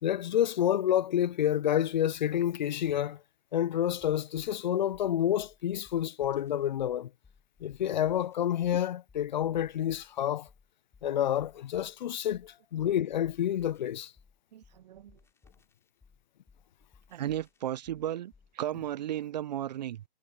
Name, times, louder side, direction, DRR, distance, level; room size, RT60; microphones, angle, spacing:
voice 1, 0.0-3.2 3.5-7.1 7.6-10.5 11.0-14.1, left 11 dB, 50° left, 0.6 m, -29 dB
sound 1, 3.9-18.5, left 5 dB, 10° left, 4.6 m, -62 dB
voice 2, 14.5-15.2 17.1-20.0, right 12 dB, 45° right, 0.9 m, -35 dB
figure-of-eight pair, 125°, 30 cm